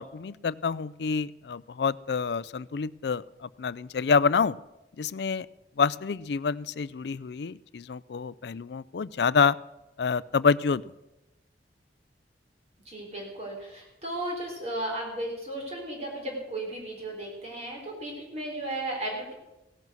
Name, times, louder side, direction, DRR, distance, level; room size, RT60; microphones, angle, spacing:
voice 1, 0.0-4.6 5.0-5.5 5.8-9.6 10.0-10.8, left 5 dB, 65° left, 20 dB, 0.4 m, -27 dB
voice 2, 12.9-19.3, right 1 dB, 40° right, -1 dB, 4.2 m, -35 dB
17.0 x 10.5 x 6.3 m, 0.95 s
head